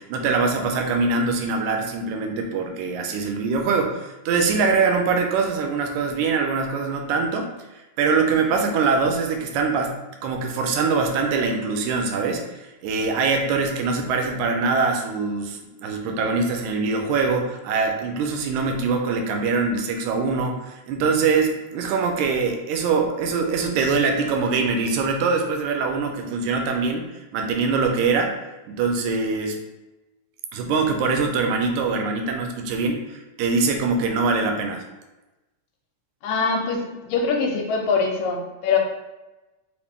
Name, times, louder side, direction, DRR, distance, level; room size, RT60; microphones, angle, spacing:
voice 1, 0.0-7.5 8.0-10.0 10.2-27.1 27.3-28.4 28.7-29.6 30.5-34.8, right 4 dB, 85° right, 3 dB, 2.0 m, -23 dB
voice 2, 36.2-38.8, left 4 dB, 80° left, 1 dB, 1.8 m, -23 dB
5.1 x 2.5 x 3.5 m, 1.1 s
omnidirectional pair, 3.4 m